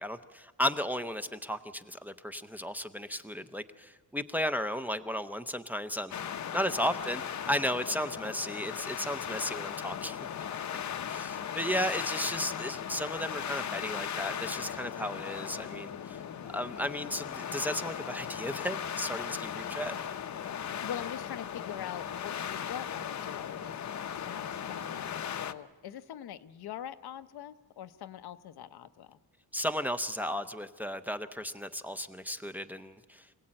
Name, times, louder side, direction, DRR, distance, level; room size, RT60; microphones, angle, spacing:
voice 1, 0.0-6.1 6.5-10.2 11.1-16.2 16.4-20.0 29.5-33.3, equal, 5° right, 8 dB, 0.6 m, -34 dB
sound 1, 6.1-25.5, left 8 dB, 50° left, 0.8 m, -37 dB
voice 2, 20.8-23.8 24.1-29.2, left 10 dB, 90° left, 11 dB, 0.9 m, -43 dB
26.0 x 17.5 x 8.8 m, 1.5 s
wide cardioid pair, 180°, 37 cm